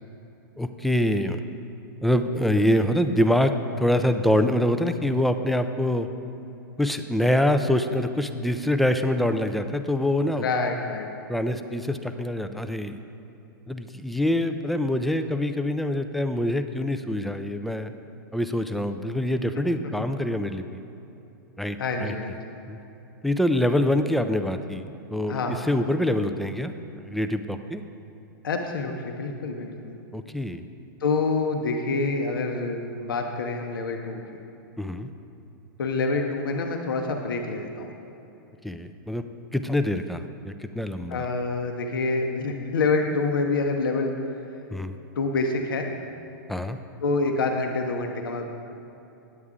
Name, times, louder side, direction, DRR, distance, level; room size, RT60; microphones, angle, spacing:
voice 1, 0.6-1.4 2.0-6.1 6.8-10.5 11.3-13.0 13.7-17.9 18.3-20.8 21.6-22.1 22.7-22.8 23.2-24.9 25.1-27.8 30.1-30.6 34.8-35.1 38.6-39.2 39.5-41.3 44.7-44.9 46.5-46.8, left 1 dB, ahead, 8 dB, 0.3 m, -25 dB
voice 2, 10.4-11.1 21.8-22.4 25.3-25.6 28.4-30.0 31.0-34.4 35.8-37.9 41.1-44.1 45.2-45.9 47.0-48.5, left 3 dB, 85° left, 3 dB, 0.8 m, -27 dB
9.6 x 8.3 x 3.6 m, 2.9 s
hypercardioid pair, 125°, 11 cm